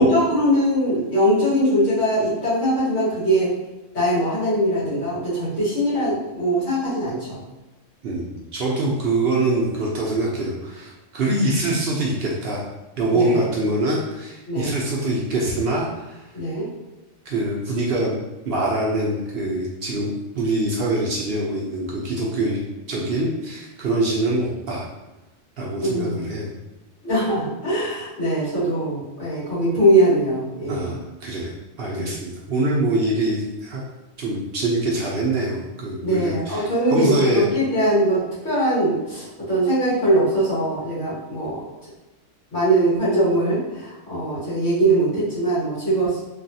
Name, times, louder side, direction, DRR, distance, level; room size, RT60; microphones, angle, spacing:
voice 1, 0.0-3.5 3.9-7.4 13.1-13.4 14.5-14.8 16.3-16.7 25.8-26.3 27.0-31.0 32.0-32.1 36.0-41.6 42.5-46.2, right 1 dB, 70° left, -10 dB, 1.8 m, -21 dB
voice 2, 8.0-12.6 13.0-16.2 17.3-18.1 18.5-22.6 22.9-24.8 25.6-26.5 30.7-31.5 31.8-33.8 34.2-37.4, right 1 dB, 60° right, -4 dB, 0.7 m, -24 dB
3.3 x 2.3 x 2.6 m, 1.1 s
omnidirectional pair, 1.3 m